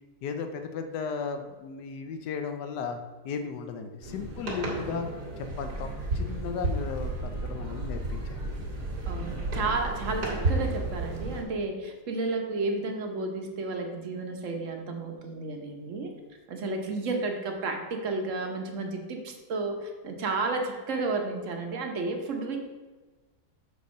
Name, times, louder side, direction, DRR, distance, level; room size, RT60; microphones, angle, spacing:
voice 1, 0.2-3.0 3.2-5.1 5.6-5.9 6.1-8.4, left 6 dB, 90° left, 7 dB, 1.3 m, -35 dB
sound 1, 4.0-11.4, right 2 dB, 80° right, 2.4 m, -32 dB
voice 2, 9.1-16.1 16.5-22.6, right 3 dB, 55° right, 3 dB, 1.3 m, -32 dB
6.9 x 4.2 x 6.4 m, 1.3 s
omnidirectional pair, 1.7 m